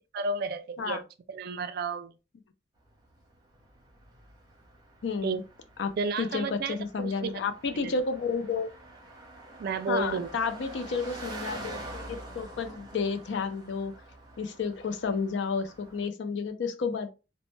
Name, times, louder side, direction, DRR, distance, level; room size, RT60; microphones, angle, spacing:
voice 1, 0.1-1.0 1.3-2.1 5.2-5.4 6.0-7.3 7.8-7.9 9.6-10.3, right 4 dB, 55° right, 0.3 m, -32 dB
Car passing by, 2.9-16.1, right 1 dB, 20° right, 0.8 m, -46 dB
voice 2, 5.0-5.4 5.8-5.9 6.2-8.7 9.9-13.9 14.4-17.1, left 5 dB, 70° left, 0.4 m, -31 dB
2.1 x 2.1 x 3.0 m
head